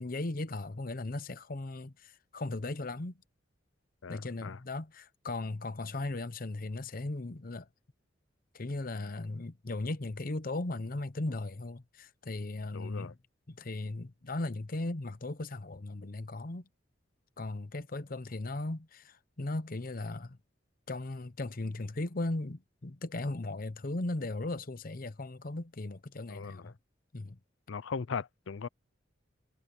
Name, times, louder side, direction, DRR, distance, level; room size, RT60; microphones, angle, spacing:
voice 1, 0.0-3.1 4.1-7.7 8.5-13.2 13.5-16.7 17.4-20.4 20.9-26.7 27.1-27.4, left 2 dB, 45° left, 0.8 m, -37 dB
voice 2, 4.0-4.6 12.7-13.1 26.3-26.7 27.7-28.7, left 5 dB, 85° left, 0.5 m, -39 dB
head